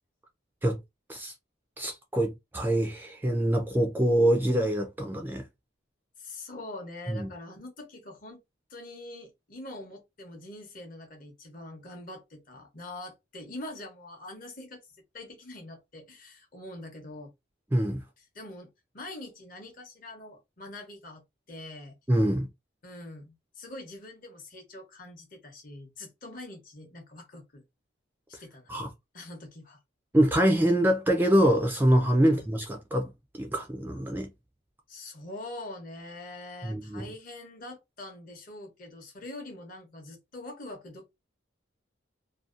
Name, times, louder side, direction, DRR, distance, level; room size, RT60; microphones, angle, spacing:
voice 1, 1.8-5.4 7.1-7.3 17.7-18.0 22.1-22.5 28.7-28.9 30.1-34.3 36.6-37.1, right 1 dB, 10° right, 0.3 m, -25 dB
voice 2, 6.2-8.4 8.7-17.3 18.3-22.0 22.8-27.6 28.3-29.8 32.2-32.5 34.9-41.1, left 2 dB, 45° left, 0.8 m, -44 dB
2.6 x 2.2 x 2.4 m
head